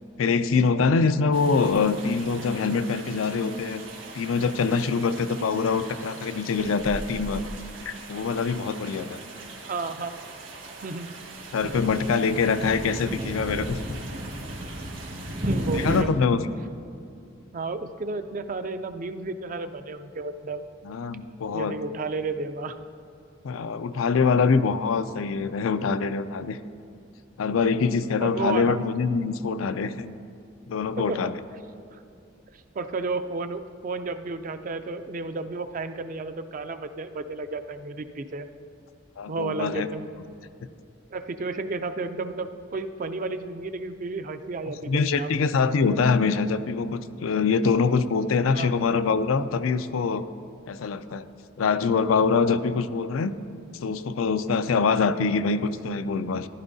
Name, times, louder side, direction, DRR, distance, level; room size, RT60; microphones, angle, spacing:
voice 1, 0.2-3.8 4.1-7.4 7.9-9.2 11.5-13.8 15.7-16.5 20.8-21.7 23.4-26.6 27.4-30.1 30.7-31.3 39.2-39.9 44.9-50.2 50.7-51.2 51.6-53.3 53.8-56.5, left 5 dB, 85° left, 12 dB, 0.4 m, -24 dB
sound 1, 1.3-16.0, right 1 dB, 70° right, 1.9 m, -36 dB
voice 2, 9.7-10.1 10.8-11.1 15.4-16.1 17.5-20.6 21.5-22.7 28.2-28.8 31.1-31.3 31.9-32.0 32.5-38.5 39.3-40.1 41.1-45.3 48.5-48.7, right 3 dB, 40° right, 9 dB, 0.4 m, -32 dB
14.0 x 11.5 x 2.7 m, 2.6 s
head